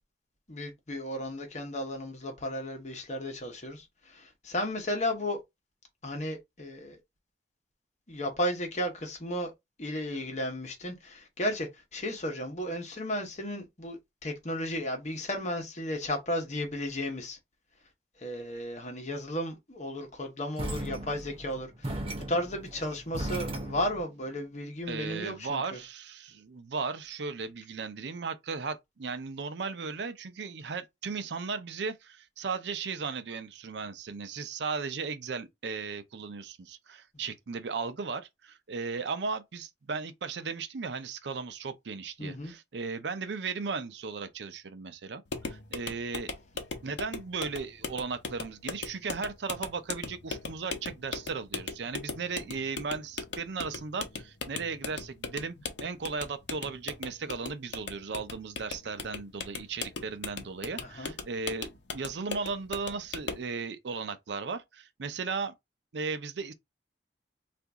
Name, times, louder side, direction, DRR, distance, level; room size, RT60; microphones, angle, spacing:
voice 1, 0.5-5.4 6.0-7.0 8.1-9.5 9.8-17.4 18.2-25.8 42.2-42.5 60.8-61.1, left 1 dB, 40° left, 1.0 m, -34 dB
sound 1, 20.6-24.1, right 1 dB, 30° right, 0.8 m, -37 dB
voice 2, 24.9-46.3 46.8-65.5 65.9-66.5, right 4 dB, 80° right, 0.5 m, -36 dB
sound 2, 45.3-63.5, left 4 dB, 90° left, 0.7 m, -39 dB
2.8 x 2.5 x 3.5 m
head